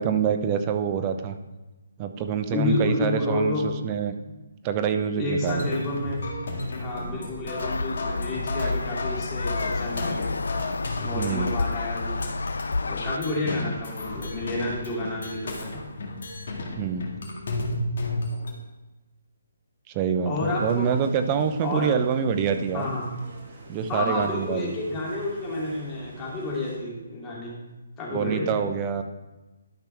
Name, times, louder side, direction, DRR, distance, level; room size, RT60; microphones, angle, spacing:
voice 1, 0.0-1.3 2.0-4.2 4.6-5.8 11.1-11.5 13.4-13.7 16.8-17.1 19.9-22.9 23.7-24.7 28.1-29.0, right 7 dB, 25° right, 8 dB, 0.7 m, -26 dB
voice 2, 2.5-3.7 5.2-6.2 6.8-10.3 11.0-12.3 12.8-15.8 20.2-20.9 21.6-21.9 22.7-23.0 23.9-27.5 28.0-28.6, left 2 dB, 20° left, -5 dB, 2.8 m, -30 dB
sound 1, 5.4-18.5, left 2 dB, 65° left, 2.0 m, -33 dB
sound 2, 7.6-13.2, left 3 dB, 80° left, 0.4 m, -29 dB
sound 3, 20.4-26.8, right 2 dB, 45° right, 1.7 m, -46 dB
12.0 x 5.9 x 3.4 m, 1.1 s
hypercardioid pair, 150°, 0 cm